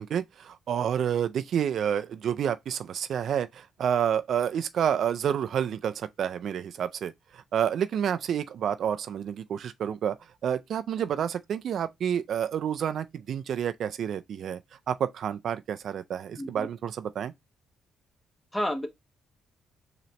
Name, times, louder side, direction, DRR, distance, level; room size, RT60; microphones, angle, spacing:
voice 1, 0.0-10.2 10.4-14.6 14.9-17.3, right 9 dB, 65° right, 0.3 m, -29 dB
voice 2, 16.3-16.7 18.5-18.9, left 1 dB, 15° left, 1.0 m, -30 dB
4.1 x 2.9 x 3.1 m
cardioid pair, 90°, 0 cm